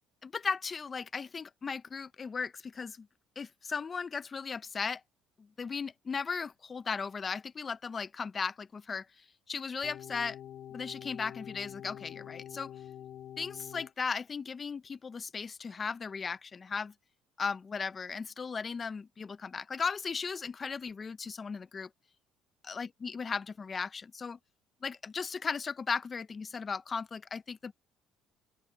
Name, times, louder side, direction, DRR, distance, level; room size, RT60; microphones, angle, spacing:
voice 1, 0.2-3.1 3.4-5.0 5.6-9.1 9.5-10.4 10.7-12.7 13.4-16.9 17.4-21.9 22.6-24.4 24.8-27.7, left 5 dB, 25° left, 0.6 m, -36 dB
sound 1, 9.8-13.9, left 10 dB, 55° left, 1.9 m, -46 dB
open air
cardioid pair, 135°, 0 cm